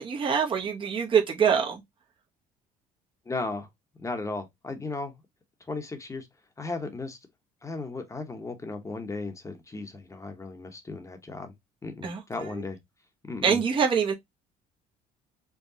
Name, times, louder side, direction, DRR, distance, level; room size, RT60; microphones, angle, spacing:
voice 1, 0.0-1.8 12.0-12.5 13.4-14.1, right 7 dB, 35° right, 0.9 m, -25 dB
voice 2, 3.3-3.7 4.0-5.1 5.7-6.3 6.6-7.2 7.6-11.5 11.8-12.8 13.3-13.6, left 3 dB, 20° left, 0.9 m, -35 dB
4.6 x 2.3 x 2.7 m
supercardioid pair, 90°, 16 cm